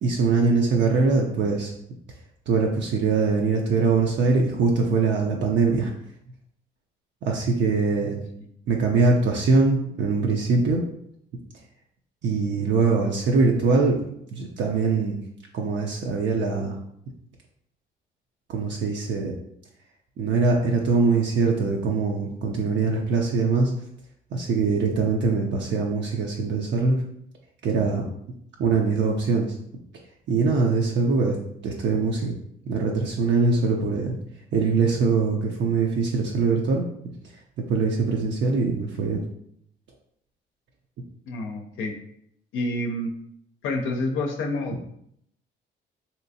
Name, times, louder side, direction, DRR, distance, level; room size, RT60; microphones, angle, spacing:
voice 1, 0.0-1.7 2.5-5.9 7.2-8.2 8.7-10.8 12.2-14.0 14.3-15.2 15.5-16.8 18.5-19.3 20.2-23.7 24.3-27.0 27.6-28.1 28.6-29.5 30.3-31.4 31.6-32.4 32.7-34.1 34.5-36.8 37.7-39.2, right 4 dB, 65° right, 0 dB, 0.5 m, -22 dB
voice 2, 41.3-41.9 42.5-43.1 43.6-44.8, left 2 dB, 85° left, 3 dB, 0.5 m, -28 dB
3.3 x 2.8 x 2.7 m, 0.72 s
cardioid pair, 90°, 20 cm